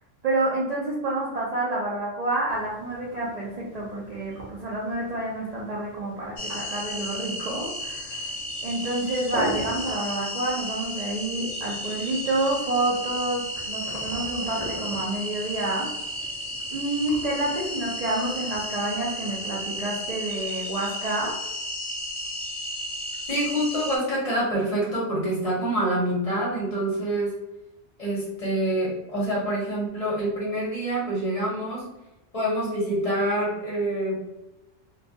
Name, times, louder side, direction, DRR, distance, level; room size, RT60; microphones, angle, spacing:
voice 1, 0.2-8.3 8.6-15.9 16.7-21.3, right 2 dB, 80° right, -5 dB, 0.3 m, -28 dB
sound 1, 2.5-20.1, right 2 dB, 40° right, 0.6 m, -41 dB
sound 2, 6.4-24.0, equal, 85° left, 0.9 m, -33 dB
voice 2, 23.3-27.4 28.0-31.9 32.3-34.2, right 1 dB, 35° left, -6 dB, 0.7 m, -26 dB
2.2 x 2.2 x 2.7 m, 0.94 s
omnidirectional pair, 1.3 m